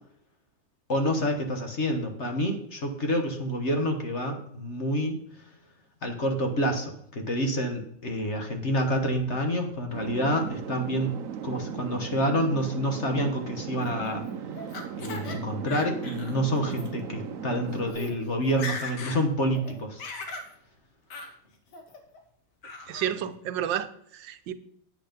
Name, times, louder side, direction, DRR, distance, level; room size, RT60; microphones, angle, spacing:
voice 1, 0.9-5.1 6.0-11.1 11.4-14.2 15.0-20.0, equal, 40° left, 4 dB, 1.4 m, -28 dB
sound 1, 9.9-17.9, right 7 dB, 60° right, 0.9 m, -37 dB
Laughter, 13.8-15.4 15.7-16.3 16.7-16.9 17.5-17.6 17.9-18.1 18.4-19.2 19.5-20.5 21.1-21.3 21.7-22.2 22.6-23.1, left 3 dB, 65° left, 2.0 m, -39 dB
voice 2, 22.9-24.5, right 10 dB, 80° right, 11 dB, 1.4 m, -31 dB
9.0 x 8.0 x 5.2 m, 0.68 s
omnidirectional pair, 2.0 m